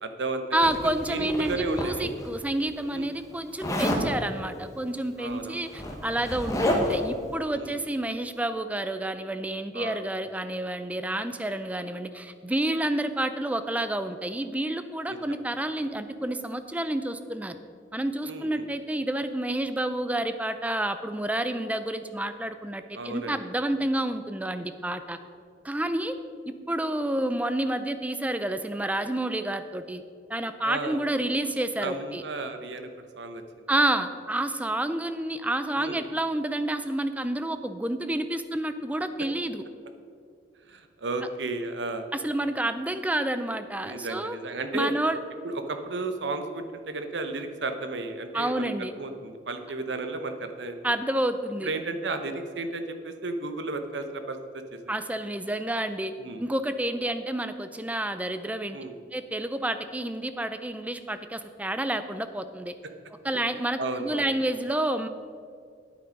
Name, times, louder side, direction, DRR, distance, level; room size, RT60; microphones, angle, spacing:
voice 1, 0.0-0.7 1.0-2.1 2.9-3.1 5.2-5.6 7.5-7.7 9.7-10.0 15.1-15.4 18.2-18.7 22.9-23.4 30.6-31.0 31.8-32.9 33.2-33.7 35.7-36.0 40.7-42.1 43.8-45.0 45.4-50.9 51.6-54.6 56.2-56.4 58.7-58.9 63.8-64.3, right 2 dB, 70° right, 7 dB, 0.9 m, -33 dB
voice 2, 0.5-17.6 17.9-25.2 25.6-26.1 26.5-30.0 30.3-32.2 33.7-39.6 42.1-44.4 44.7-45.2 48.3-48.9 50.8-51.7 54.9-56.1 56.4-58.8 59.1-62.7 63.2-65.1, right 1 dB, 10° right, 10 dB, 0.4 m, -29 dB
Zipper (clothing), 0.6-2.3 3.6-4.1 5.2-5.3 5.6-7.1, left 1 dB, 20° left, 1.1 m, -29 dB
9.5 x 8.3 x 5.2 m, 2.2 s
head